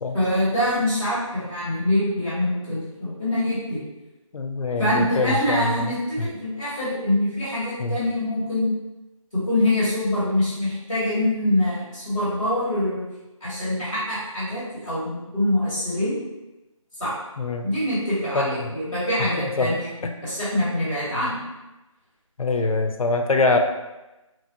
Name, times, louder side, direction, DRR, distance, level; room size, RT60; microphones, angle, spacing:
voice 1, 0.1-3.8 4.8-8.7 9.3-13.1 13.4-16.1 17.0-17.1 17.6-19.9 20.2-21.4, left 1 dB, 10° right, -20 dB, 1.2 m, -24 dB
voice 2, 4.3-6.3 7.8-8.0 17.4-17.7 18.3-18.7 19.4-19.8 20.0-20.1 22.4-23.6, left 3 dB, 85° left, 5 dB, 0.5 m, -24 dB
3.0 x 2.5 x 2.7 m, 1.0 s
figure-of-eight pair, 175°, 17 cm